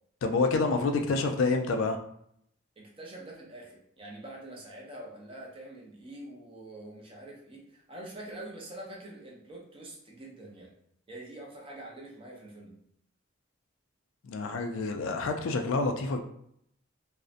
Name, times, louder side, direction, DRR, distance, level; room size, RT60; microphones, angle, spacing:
voice 1, 0.2-2.0 14.2-16.2, left 3 dB, 70° left, 5 dB, 0.3 m, -28 dB
voice 2, 2.8-10.7 11.1-12.8, right 1 dB, 25° right, -2 dB, 0.4 m, -45 dB
2.6 x 2.0 x 2.4 m, 0.71 s
head